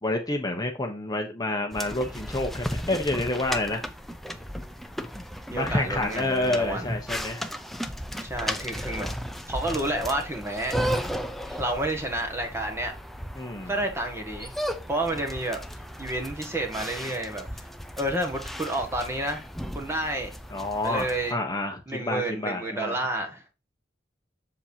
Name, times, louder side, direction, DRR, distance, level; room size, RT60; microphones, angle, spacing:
voice 1, 0.0-3.8 5.5-7.5 13.4-13.7 20.5-23.0, left 2 dB, 20° left, 1.0 m, -28 dB
sound 1, 1.7-21.3, equal, ahead, 0.6 m, -35 dB
voice 2, 5.5-6.9 8.2-9.1 9.5-11.1 11.5-12.9 13.7-14.5 14.9-15.6 16.0-17.5 18.0-19.5 19.7-20.4 20.8-21.4 21.9-23.4, right 1 dB, 15° right, 1.8 m, -30 dB
7.5 x 7.2 x 2.9 m
head